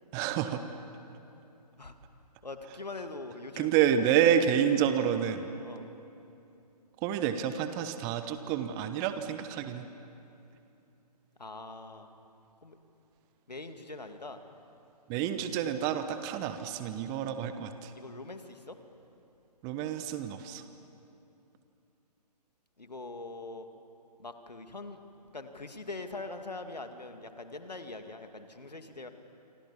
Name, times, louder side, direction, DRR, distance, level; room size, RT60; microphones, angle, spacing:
voice 1, 0.1-0.6 3.6-5.5 7.0-9.8 15.1-17.9 19.6-20.6, right 9 dB, 15° right, 10 dB, 0.9 m, -29 dB
voice 2, 2.4-3.7 4.2-4.3 5.6-5.9 11.4-12.1 12.6-12.8 13.5-14.4 17.9-18.8 22.8-23.7 24.2-25.0 25.3-29.1, left 3 dB, 75° left, 7 dB, 2.3 m, -42 dB
27.0 x 26.0 x 7.3 m, 2.8 s
figure-of-eight pair, 135°, 21 cm